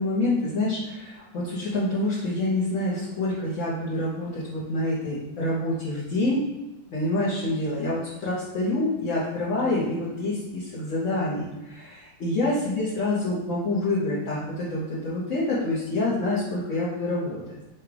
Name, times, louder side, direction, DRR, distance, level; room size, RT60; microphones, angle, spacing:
voice 1, 0.0-6.4 6.9-17.6, left 2 dB, 50° left, -8 dB, 1.3 m, -27 dB
5.8 x 2.4 x 3.3 m, 1.0 s
omnidirectional pair, 1.8 m